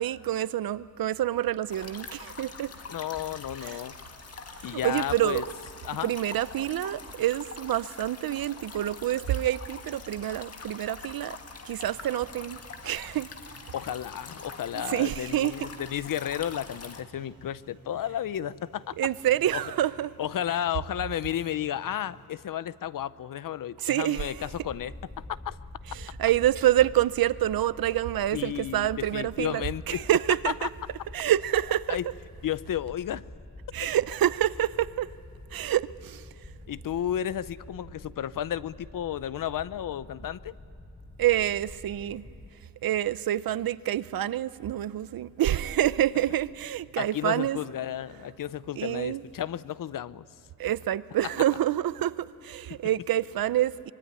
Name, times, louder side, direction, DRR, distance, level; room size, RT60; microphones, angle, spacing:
voice 1, 0.0-2.7 3.6-3.8 4.7-5.4 6.0-11.4 11.6-13.3 14.7-15.7 19.0-20.1 23.8-24.5 25.9-30.7 31.1-32.0 33.7-35.1 35.5-36.3 41.2-42.3 42.8-47.6 48.8-49.2 50.6-53.9, right 12 dB, 75° right, 0.7 m, -27 dB
sound 1, 1.7-17.0, left 4 dB, 45° left, 1.7 m, -44 dB
voice 2, 2.9-3.9 4.6-5.4 5.8-6.1 13.7-19.0 19.5-19.6 20.2-24.9 25.4-25.6 28.3-30.1 30.4-30.7 31.9-32.1 32.4-33.2 36.7-40.5 47.0-50.2, left 10 dB, 65° left, 0.7 m, -32 dB
sound 2, 11.8-22.3, right 3 dB, 45° right, 7.5 m, -56 dB
sound 3, 24.3-42.5, left 1 dB, 15° left, 1.0 m, -47 dB
24.5 x 22.5 x 9.7 m
wide cardioid pair, 140°, 35 cm